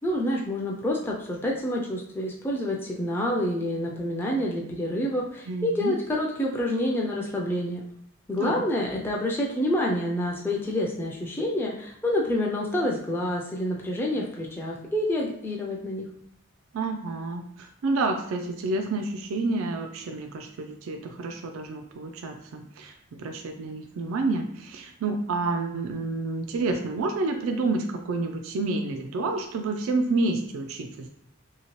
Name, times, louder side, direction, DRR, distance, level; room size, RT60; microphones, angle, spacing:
voice 1, 0.0-7.8 8.3-16.1, left 1 dB, 10° left, -2 dB, 0.3 m, -28 dB
voice 2, 5.5-5.9 8.4-8.6 16.7-31.1, right 3 dB, 80° right, 5 dB, 0.4 m, -29 dB
2.8 x 2.7 x 3.0 m, 0.68 s
head